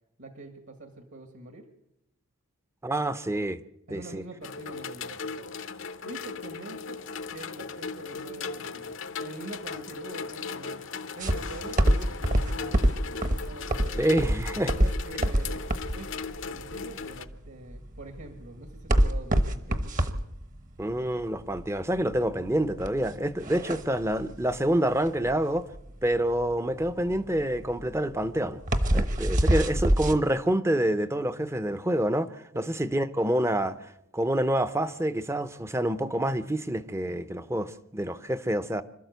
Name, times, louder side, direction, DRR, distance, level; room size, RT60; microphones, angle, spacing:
voice 1, 0.2-1.7 3.9-5.6 6.0-7.0 7.3-10.8 11.2-14.0 14.7-15.7 15.9-16.1 16.5-19.9 23.6-23.8 25.3-25.4 32.5-32.8, right 2 dB, 60° right, 1.9 m, -44 dB
voice 2, 2.8-3.6 3.9-4.2 14.0-14.7 15.2-15.3 20.8-25.6 26.0-28.6 28.9-38.8, right 1 dB, 10° right, 0.7 m, -27 dB
sound 1, 4.4-17.3, left 5 dB, 55° left, 0.8 m, -38 dB
sound 2, 11.2-30.2, right 1 dB, 35° right, 1.1 m, -26 dB
26.0 x 12.5 x 8.1 m
head